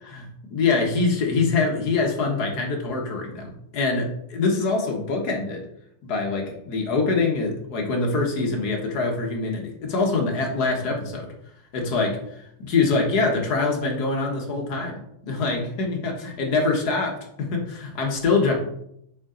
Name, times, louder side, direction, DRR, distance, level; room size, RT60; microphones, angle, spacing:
voice 1, 0.0-5.6 6.0-11.3 11.7-18.5, left 3 dB, 55° left, 1 dB, 1.7 m, -24 dB
7.2 x 4.9 x 3.8 m, 0.75 s
omnidirectional pair, 2.2 m